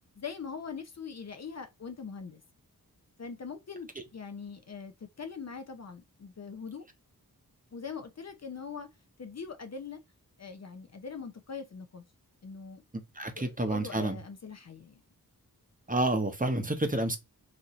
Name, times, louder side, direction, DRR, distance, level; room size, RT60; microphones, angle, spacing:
voice 1, 0.2-2.4 3.2-6.8 7.7-8.9 9.2-10.0 10.4-12.0 12.4-12.8 13.4-15.0, left 5 dB, 45° left, 0.6 m, -42 dB
voice 2, 13.1-14.2 15.9-17.2, right 2 dB, 20° right, 0.8 m, -29 dB
4.1 x 2.6 x 3.0 m
cardioid pair, 45°, 38 cm